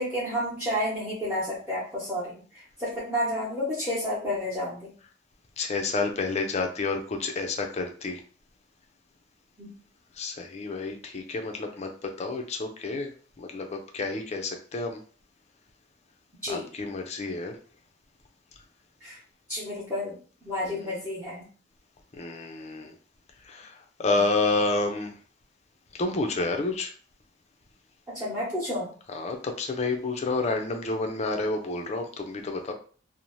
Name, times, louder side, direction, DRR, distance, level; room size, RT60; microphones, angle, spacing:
voice 1, 0.0-4.9 9.6-9.7 16.4-16.7 19.0-19.2 19.5-20.2 20.4-21.4 28.1-28.9, equal, 5° right, -9 dB, 0.9 m, -31 dB
voice 2, 5.6-8.2 10.2-11.9 12.2-13.1 13.4-15.0 16.5-17.5 20.6-20.9 22.2-22.9 23.5-23.7 24.0-25.1 25.9-26.9 29.1-32.7, left 3 dB, 35° left, 4 dB, 0.4 m, -29 dB
2.6 x 2.0 x 3.0 m, 0.41 s
head